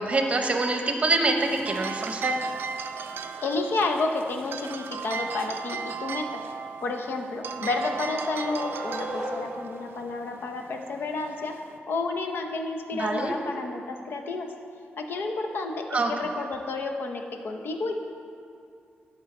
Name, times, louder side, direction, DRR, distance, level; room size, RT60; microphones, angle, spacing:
voice 1, 0.0-2.4 12.9-13.3 15.9-16.1, right 2 dB, 35° right, 4 dB, 0.8 m, -25 dB
sound 1, 1.4-11.8, right 6 dB, 70° right, 0.4 m, -37 dB
voice 2, 3.4-6.4 6.8-11.5 11.9-14.5 15.0-18.0, left 3 dB, 65° left, 4 dB, 0.7 m, -30 dB
sound 2, 6.6-9.9, equal, 5° left, 1.8 m, -38 dB
11.5 x 4.6 x 4.3 m, 2.4 s
wide cardioid pair, 130°, 4 cm